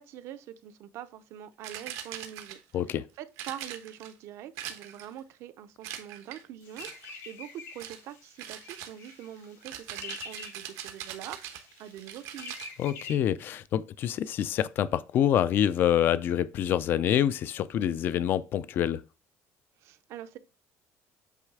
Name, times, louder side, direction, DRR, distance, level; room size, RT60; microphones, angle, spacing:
voice 1, 0.0-2.6 2.9-12.6 19.8-20.4, right 11 dB, 60° right, 0.6 m, -44 dB
sound 1, 1.6-2.8 3.4-4.1 4.6-5.2 5.8-6.4 6.8-7.2 7.8-8.0 8.4-12.7, right 10 dB, 85° right, 1.1 m, -42 dB
voice 2, 2.7-3.0 12.8-19.0, left 10 dB, 40° left, 0.3 m, -26 dB
sound 2, 6.6-13.2, left 4 dB, 80° left, 2.3 m, -47 dB
8.3 x 3.2 x 4.7 m
cardioid pair, 175°, 5 cm